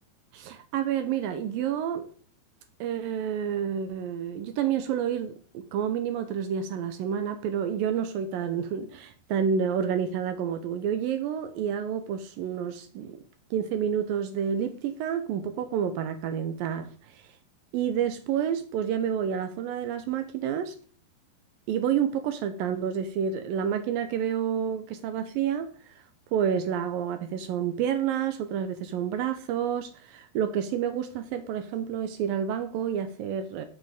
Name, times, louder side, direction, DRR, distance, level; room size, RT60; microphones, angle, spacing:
voice 1, 0.3-2.1 2.8-13.2 13.5-17.2 17.7-20.7 21.7-25.9 26.3-33.7, right 8 dB, 85° right, 2.0 m, -29 dB
10.5 x 7.5 x 3.7 m
omnidirectional pair, 5.1 m